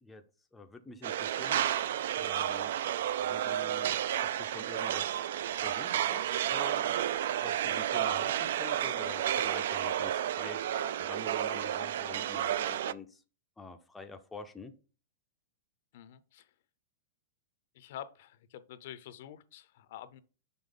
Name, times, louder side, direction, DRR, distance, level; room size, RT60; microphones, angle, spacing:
voice 1, 0.5-1.6 2.2-2.8 3.2-5.1 5.6-7.0 7.4-10.6 11.0-13.2 13.6-14.7, left 3 dB, 5° left, 0.5 m, -47 dB
sound 1, 1.0-12.9, right 11 dB, 65° right, 0.3 m, -31 dB
voice 2, 15.9-16.5 17.7-20.2, left 10 dB, 55° left, 0.6 m, -47 dB
5.9 x 5.4 x 3.9 m
supercardioid pair, 160°, 0 cm